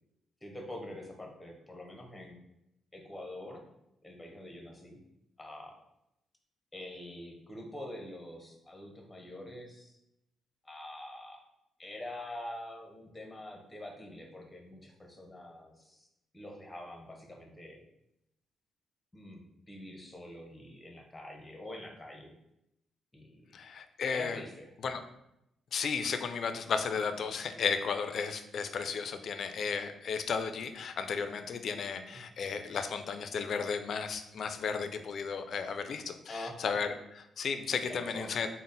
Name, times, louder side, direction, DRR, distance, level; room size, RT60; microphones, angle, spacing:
voice 1, 0.4-2.4 2.9-3.6 4.0-5.0 5.4-5.8 6.7-10.0 10.6-11.4 11.8-16.1 16.3-17.8 19.1-22.3 23.1-23.4 24.1-24.7 32.1-32.2 36.3-36.6 37.8-38.3, left 1 dB, 10° left, 2 dB, 0.7 m, -45 dB
voice 2, 23.5-24.4 24.8-25.0 25.7-38.5, left 5 dB, 55° left, 8 dB, 0.3 m, -34 dB
3.9 x 2.0 x 3.8 m, 0.84 s
cardioid pair, 115°, 0 cm